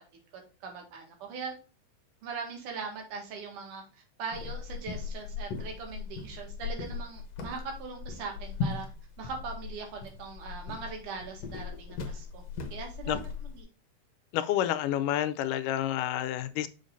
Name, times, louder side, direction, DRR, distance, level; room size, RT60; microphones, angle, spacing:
voice 1, 0.3-1.5 2.2-3.8 4.2-8.9 9.2-12.4 12.7-13.7, right 5 dB, 80° right, 3.4 m, -40 dB
sound 1, 4.3-13.6, left 5 dB, 60° left, 2.0 m, -38 dB
voice 2, 14.3-16.7, left 12 dB, 90° left, 2.2 m, -29 dB
6.8 x 6.6 x 2.6 m
omnidirectional pair, 3.6 m